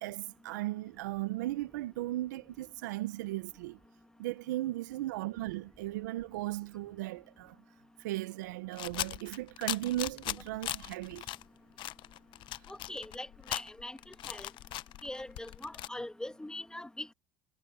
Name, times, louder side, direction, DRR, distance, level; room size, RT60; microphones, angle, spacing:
voice 1, 0.0-3.8 4.2-7.6 8.0-11.3, right 16 dB, 85° right, 0.8 m, -36 dB
sound 1, 8.7-11.4 11.8-15.9, left 15 dB, 60° left, 0.8 m, -39 dB
voice 2, 12.7-14.5 15.0-17.1, left 1 dB, 5° left, 1.9 m, -42 dB
supercardioid pair, 85°, 9 cm